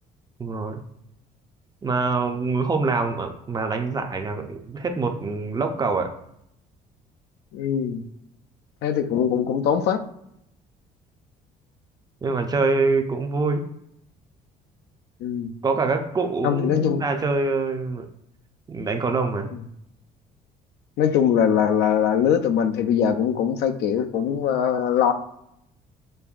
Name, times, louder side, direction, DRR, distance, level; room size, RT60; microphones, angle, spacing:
voice 1, 0.4-0.8 1.8-6.1 12.2-13.6 15.6-18.1 18.7-19.5, right 3 dB, 25° right, 5 dB, 0.5 m, -25 dB
voice 2, 7.5-8.0 8.8-10.0 15.2-15.5 16.4-17.1 19.5-19.6 21.0-25.1, left 8 dB, 80° left, 7 dB, 0.4 m, -22 dB
5.3 x 2.5 x 2.4 m, 0.76 s
cardioid pair, 110°, 17 cm